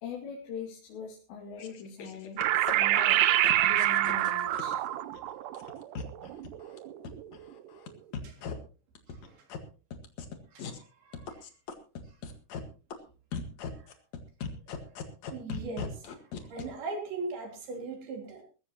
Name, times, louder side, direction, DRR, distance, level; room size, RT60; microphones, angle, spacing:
voice 1, 0.0-3.2 3.6-5.0, left 4 dB, 85° left, -2 dB, 4.7 m, -42 dB
sound 1, 1.6-5.2 5.5-6.8 7.0-7.9 8.1-8.5 9.0-9.6 9.9-10.8 11.1-12.6 12.9-13.0 13.3-16.6, left 6 dB, 50° left, 2.5 m, -39 dB
sound 2, 2.4-7.2, right 14 dB, 85° right, 1.8 m, -27 dB
voice 2, 10.5-11.4 15.3-16.0 16.5-18.4, right 3 dB, 65° right, 2 dB, 5.4 m, -39 dB
20.5 x 15.5 x 3.0 m, 0.35 s
omnidirectional pair, 4.9 m